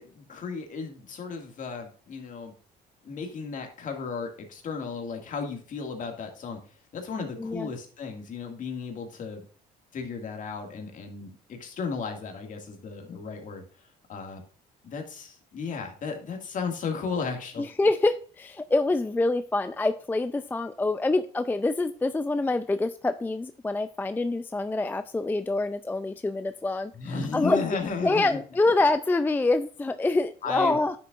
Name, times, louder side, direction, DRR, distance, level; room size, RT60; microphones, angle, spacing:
voice 1, 0.0-2.5 3.0-6.6 6.9-9.4 9.9-13.6 14.1-14.4 14.8-17.7 26.9-28.4 30.4-30.8, left 5 dB, 50° left, 3 dB, 2.1 m, -34 dB
voice 2, 7.4-7.7 17.6-27.6 28.0-30.9, left 2 dB, 10° left, 10 dB, 0.4 m, -26 dB
9.4 x 6.7 x 2.5 m, 0.41 s
cardioid pair, 110°, 17 cm